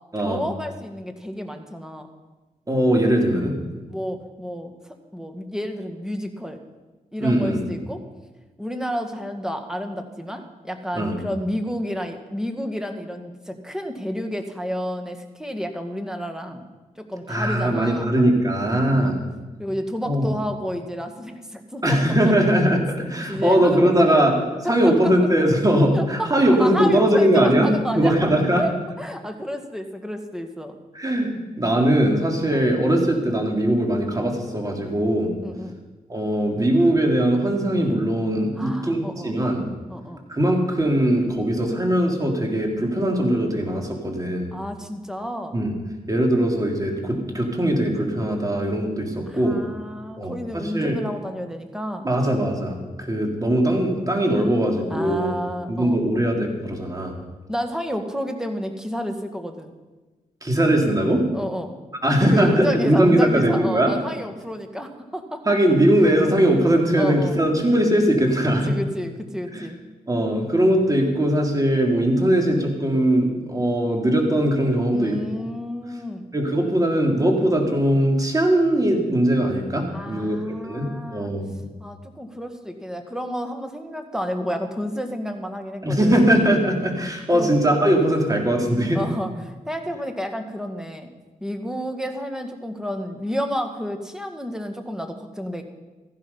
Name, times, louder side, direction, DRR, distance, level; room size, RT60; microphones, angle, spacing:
voice 1, 0.2-2.1 3.9-6.6 7.1-8.0 8.6-16.7 17.1-18.1 18.9-19.2 19.6-22.0 22.3-22.5 23.2-24.3 24.6-25.1 25.9-26.3 26.6-28.1 28.6-30.8 32.5-32.7 35.4-35.8 38.6-39.3 39.9-40.2 44.5-45.6 49.3-52.1 54.9-56.0 57.5-59.7 61.3-61.7 62.3-65.4 66.0-66.3 66.8-67.5 68.5-69.8 74.9-76.3 79.9-81.3 81.8-86.3 87.3-87.5 88.9-91.1 91.4-95.6, equal, 5° right, 5 dB, 1.9 m, -30 dB
voice 2, 2.7-3.6 7.2-7.7 10.9-11.2 17.3-19.2 20.0-20.3 21.8-24.3 24.7-28.6 30.9-35.3 36.1-39.7 40.3-44.5 45.5-45.7 46.1-49.6 50.2-51.0 52.0-55.3 55.7-57.1 60.4-61.2 62.0-63.9 65.5-68.7 69.5-69.6 70.1-75.2 76.3-80.4 80.6-81.6 85.8-89.0, right 1 dB, 25° right, 1 dB, 3.4 m, -20 dB
14.5 x 11.5 x 5.6 m, 1.2 s
cardioid pair, 60°, 15 cm